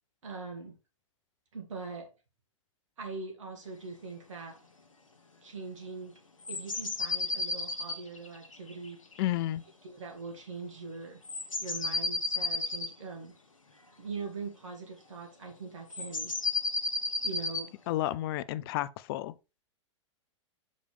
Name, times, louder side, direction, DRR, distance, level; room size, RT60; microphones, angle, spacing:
voice 1, 0.2-0.7 1.5-2.1 3.0-4.6 5.4-6.1 6.5-9.0 9.8-11.2 11.6-13.3 14.0-16.3 17.2-17.7, right 4 dB, 70° right, 2.4 m, -42 dB
sound 1, 6.4-9.2 11.2-12.9 15.9-17.7, left 3 dB, 85° left, 1.2 m, -33 dB
voice 2, 9.2-9.6 17.9-19.3, left 14 dB, 45° left, 0.4 m, -31 dB
6.5 x 5.1 x 3.4 m
figure-of-eight pair, 100°, 17 cm